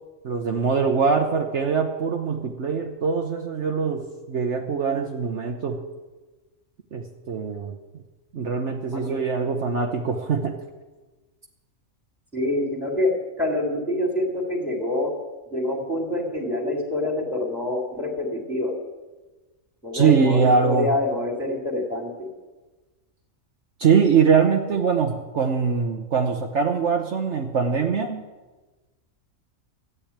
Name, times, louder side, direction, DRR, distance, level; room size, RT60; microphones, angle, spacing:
voice 1, 0.2-5.8 6.9-7.8 8.3-10.5 19.9-20.9 23.8-28.2, right 5 dB, 60° right, 3 dB, 1.3 m, -22 dB
voice 2, 12.3-13.1 13.4-15.1 15.5-18.7 19.8-22.3, left 1 dB, ahead, 0 dB, 3.2 m, -26 dB
13.5 x 9.5 x 8.8 m, 1.2 s
omnidirectional pair, 1.4 m